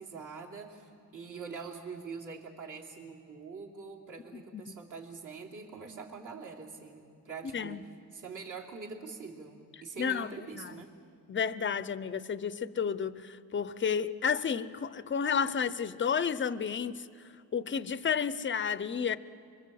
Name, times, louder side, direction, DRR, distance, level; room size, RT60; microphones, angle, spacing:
voice 1, 0.0-7.8 8.1-10.9, right 5 dB, 50° right, -1 dB, 3.4 m, -44 dB
voice 2, 10.0-10.3 10.5-10.7 11.3-17.1 17.5-19.2, left 7 dB, 30° left, 15 dB, 0.7 m, -31 dB
25.5 x 24.5 x 7.8 m, 2.4 s
cardioid pair, 125°, 39 cm